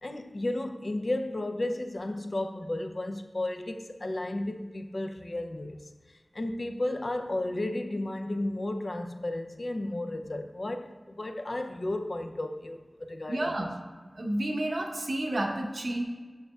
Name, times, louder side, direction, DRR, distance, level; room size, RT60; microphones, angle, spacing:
voice 1, 0.0-5.9 6.3-13.7, left 1 dB, 60° left, 0.4 m, -33 dB
voice 2, 13.3-13.7 14.1-16.0, right 1 dB, 70° right, 0.7 m, -30 dB
6.5 x 6.3 x 2.3 m
wide cardioid pair, 55°, 0 cm